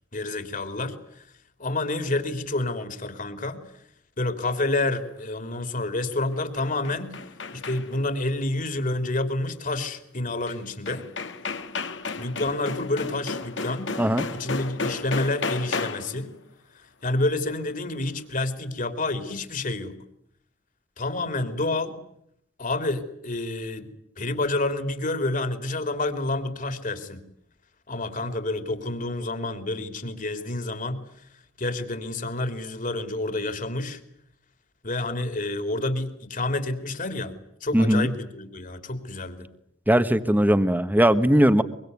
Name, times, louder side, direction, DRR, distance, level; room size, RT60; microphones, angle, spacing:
voice 1, 0.1-1.2 1.6-3.6 4.2-7.2 7.5-11.1 12.1-14.0 14.3-16.3 17.0-20.0 21.0-22.0 22.6-23.9 24.2-27.2 27.9-31.0 31.6-34.0 34.8-37.4 37.6-39.5, left 2 dB, 45° left, 9 dB, 3.3 m, -29 dB
sound 1, 6.3-8.1 10.5-10.6 10.9-16.2, left 4 dB, 70° left, 2.1 m, -33 dB
voice 2, 37.7-38.1 39.9-41.6, equal, 10° right, 11 dB, 1.3 m, -19 dB
24.0 x 23.5 x 9.5 m, 0.73 s
head